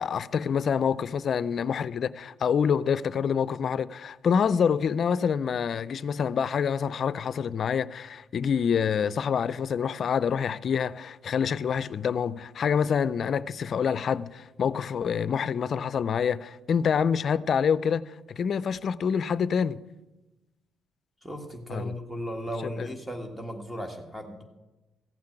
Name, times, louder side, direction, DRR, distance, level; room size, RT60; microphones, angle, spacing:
voice 1, 0.0-19.8 21.7-21.9 22.6-22.9, left 7 dB, 55° left, 0.5 m, -27 dB
voice 2, 21.2-24.4, equal, 10° right, 1.7 m, -36 dB
15.0 x 5.9 x 8.8 m
cardioid pair, 90°, 0 cm